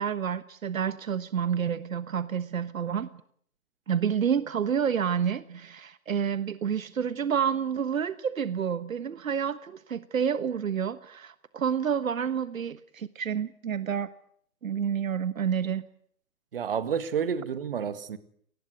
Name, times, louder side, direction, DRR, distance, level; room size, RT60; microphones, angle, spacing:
voice 1, 0.0-3.1 3.9-14.1 14.6-15.8, right 7 dB, 65° right, 14 dB, 1.4 m, -29 dB
voice 2, 16.5-18.2, right 7 dB, 40° right, 13 dB, 1.9 m, -30 dB
28.0 x 19.5 x 9.5 m, 0.65 s
hypercardioid pair, 175°, 43 cm